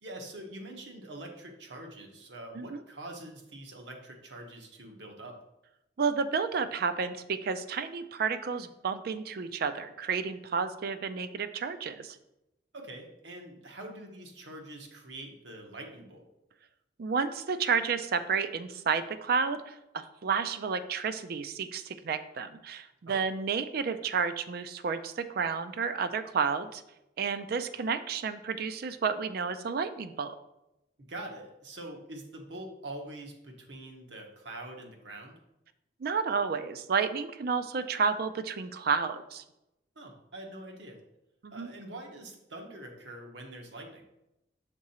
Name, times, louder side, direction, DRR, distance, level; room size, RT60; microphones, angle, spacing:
voice 1, 0.0-5.4 12.7-16.2 23.1-23.2 31.0-35.4 39.9-41.0 41.5-44.0, right 1 dB, 85° right, 2 dB, 1.0 m, -44 dB
voice 2, 6.0-12.2 17.0-26.8 27.2-30.3 36.0-39.4 41.4-41.7, right 5 dB, 60° right, 11 dB, 0.4 m, -31 dB
6.0 x 3.7 x 4.2 m, 0.89 s
head